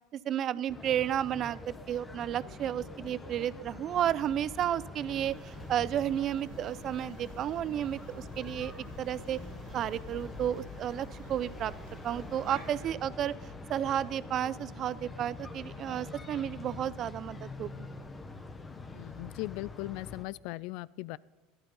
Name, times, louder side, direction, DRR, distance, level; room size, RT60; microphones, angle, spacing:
voice 1, 0.1-8.7 9.0-9.4 9.7-11.7 12.0-13.3 13.7-17.9, right 10 dB, 45° right, 19 dB, 0.4 m, -32 dB
sound 1, 0.7-20.2, left 3 dB, 15° left, 1.2 m, -45 dB
sound 2, 5.1-12.9, right 5 dB, 75° right, 2.4 m, -51 dB
voice 2, 18.9-21.2, left 19 dB, 65° left, 22 dB, 0.3 m, -38 dB
12.5 x 12.0 x 5.5 m, 1.1 s
supercardioid pair, 115°, 0 cm